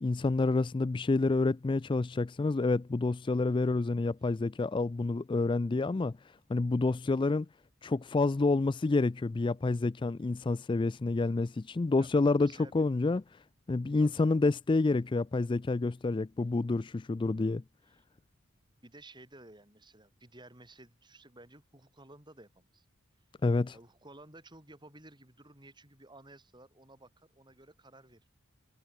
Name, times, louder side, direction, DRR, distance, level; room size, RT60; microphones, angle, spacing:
voice 1, 0.0-7.5 7.8-17.6 23.4-23.8, left 3 dB, 25° left, 0.3 m, -28 dB
voice 2, 12.0-12.9 14.0-14.4 18.8-22.8 23.7-28.3, right 2 dB, 20° right, 7.7 m, -55 dB
head